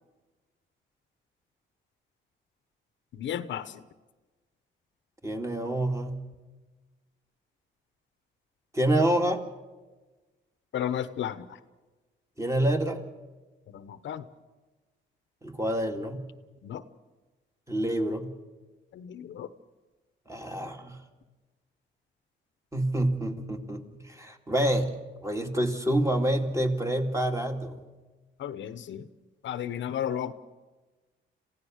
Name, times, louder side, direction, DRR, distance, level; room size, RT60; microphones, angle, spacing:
voice 1, 3.1-3.7 10.7-11.4 13.7-14.2 16.6-16.8 18.9-19.5 28.4-29.1 29.4-30.3, left 10 dB, 70° left, 13 dB, 1.0 m, -33 dB
voice 2, 5.2-6.3 8.7-9.4 12.4-13.0 15.4-16.3 17.7-18.3 20.3-21.0 22.7-24.9 25.2-27.8, right 1 dB, 15° right, 3 dB, 2.5 m, -27 dB
27.0 x 16.0 x 6.5 m, 1.2 s
cardioid pair, 90°, 20 cm